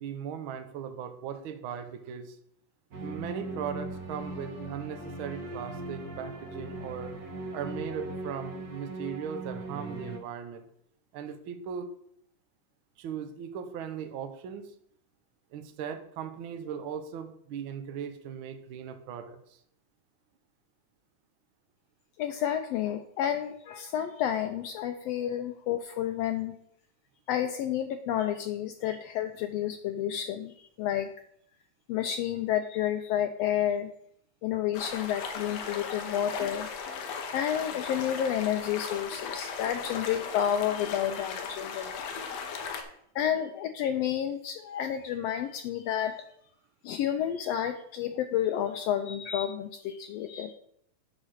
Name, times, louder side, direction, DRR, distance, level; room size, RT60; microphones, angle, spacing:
voice 1, 0.0-2.4 3.0-7.2 7.5-10.7 11.1-11.9 13.0-14.7 15.5-19.6, right 8 dB, 70° right, 7 dB, 1.2 m, -38 dB
sound 1, 2.9-10.2, right 2 dB, 40° right, 1.4 m, -39 dB
voice 2, 22.2-26.5 27.3-31.1 31.9-33.9 34.4-36.7 37.3-42.1 42.7-46.1 46.8-50.5, left 10 dB, 85° left, 7 dB, 1.4 m, -30 dB
sound 2, 34.7-42.8, left 6 dB, 70° left, 2.0 m, -37 dB
9.7 x 4.1 x 6.4 m, 0.70 s
omnidirectional pair, 3.4 m